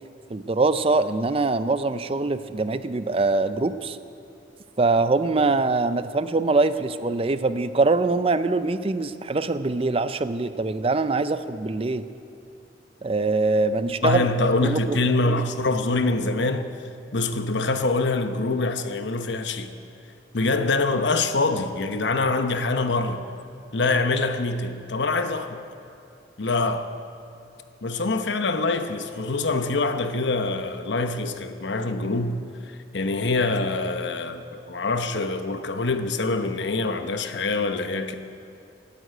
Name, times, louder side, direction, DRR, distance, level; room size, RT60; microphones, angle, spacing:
voice 1, 0.3-4.0 4.8-12.0 13.0-14.3 14.6-15.4, right 3 dB, 30° right, 0.5 m, -23 dB
voice 2, 14.0-16.7 17.1-19.7 20.3-23.3 23.7-25.6 26.4-26.9 27.8-32.4 32.6-38.1, left 3 dB, 80° left, 0.9 m, -25 dB
15.0 x 9.4 x 9.1 m
head